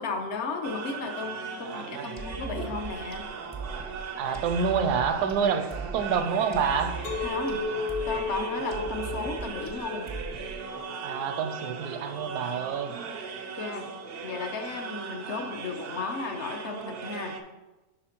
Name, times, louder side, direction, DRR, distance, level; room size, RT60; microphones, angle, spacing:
voice 1, 0.0-3.3 7.2-7.7 8.1-10.1 13.6-13.9 14.2-17.4, left 4 dB, 55° left, 5 dB, 0.9 m, -34 dB
sound 1, 0.6-17.4, right 5 dB, 65° right, 0.5 m, -38 dB
voice 2, 1.6-2.1 4.2-7.0 11.0-12.9, right 6 dB, 80° right, 8 dB, 1.1 m, -28 dB
sound 2, 2.2-10.8, right 5 dB, 20° right, 0.4 m, -39 dB
Chink clink, 7.0-12.2, left 4 dB, 80° left, 1.4 m, -35 dB
5.6 x 4.9 x 4.4 m, 1.1 s
omnidirectional pair, 1.7 m